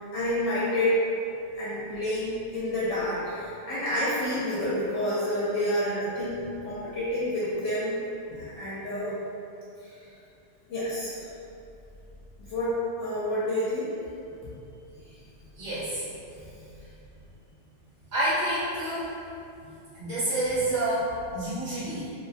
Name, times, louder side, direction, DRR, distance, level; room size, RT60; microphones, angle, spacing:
voice 1, 0.1-1.0 1.5-8.0 8.3-9.2 9.8-10.0 10.7-11.2 12.4-13.9, left 1 dB, 85° left, -9 dB, 0.9 m, -29 dB
voice 2, 15.6-16.0 16.3-16.4 18.1-19.1 19.6-22.1, right 1 dB, 45° right, -13 dB, 0.8 m, -29 dB
2.4 x 2.1 x 2.5 m, 2.6 s
omnidirectional pair, 1.2 m